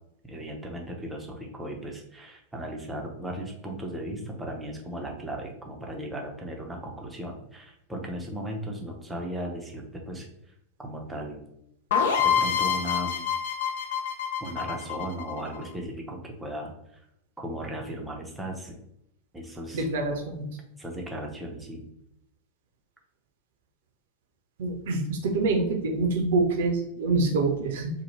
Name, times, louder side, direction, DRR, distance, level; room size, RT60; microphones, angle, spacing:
voice 1, 0.2-10.3 10.8-11.4 12.2-13.3 14.4-16.7 17.4-18.7 19.3-19.9 20.8-21.9, right 1 dB, 10° right, 0 dB, 0.6 m, -36 dB
sound 1, 11.9-15.6, left 7 dB, 60° left, 0.5 m, -26 dB
voice 2, 19.7-20.4 24.6-27.9, right 3 dB, 55° right, 3 dB, 0.5 m, -26 dB
2.8 x 2.1 x 3.1 m, 0.78 s
figure-of-eight pair, 90°, 0 cm